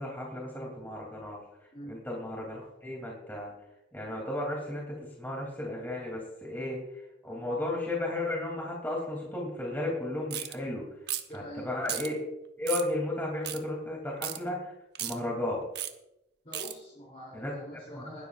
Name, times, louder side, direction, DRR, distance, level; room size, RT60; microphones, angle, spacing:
voice 1, 0.0-1.4 1.9-3.5 3.9-10.9 11.3-12.2 12.6-14.7 15.0-15.6 17.3-17.5 17.9-18.0, left 1 dB, 10° left, -2 dB, 2.9 m, -34 dB
sound 1, 10.3-10.5 11.1-11.4 11.9-12.1 12.7-12.9 13.4-13.6 14.2-14.4 14.9-15.1 15.8-15.9 16.5-16.7, right 11 dB, 65° right, 1.0 m, -34 dB
voice 2, 11.3-11.8 16.4-18.3, equal, 35° left, -3 dB, 3.2 m, -44 dB
20.5 x 12.5 x 2.5 m, 0.87 s
head